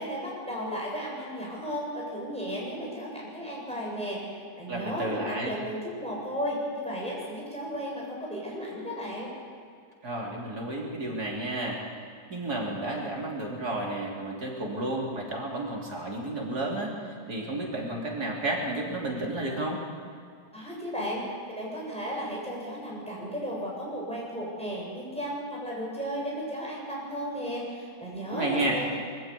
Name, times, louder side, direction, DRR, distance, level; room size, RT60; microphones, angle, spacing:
voice 1, 0.0-9.3 20.5-21.2 21.5-29.0, equal, 5° left, -4 dB, 7.5 m, -34 dB
voice 2, 4.7-5.5 10.0-11.8 12.3-19.8 28.3-28.8, right 2 dB, 85° right, -2 dB, 3.8 m, -32 dB
23.5 x 15.0 x 8.4 m, 2.3 s
omnidirectional pair, 1.6 m